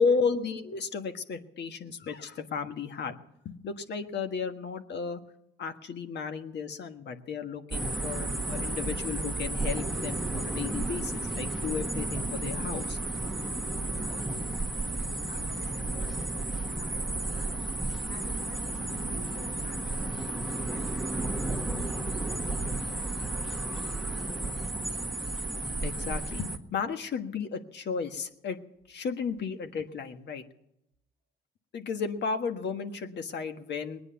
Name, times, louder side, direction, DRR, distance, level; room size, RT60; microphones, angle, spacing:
voice 1, 0.0-3.2 3.4-5.2 5.6-13.0 25.8-28.6 28.9-30.4 31.7-34.0, left 5 dB, 60° left, 7 dB, 1.5 m, -33 dB
sound 1, 7.7-26.6, right 2 dB, ahead, 1.3 m, -32 dB
voice 2, 13.7-22.2 22.6-23.6, left 2 dB, 80° left, -1 dB, 4.5 m, -51 dB
20.5 x 9.6 x 7.0 m, 0.83 s
cardioid pair, 90°, 20 cm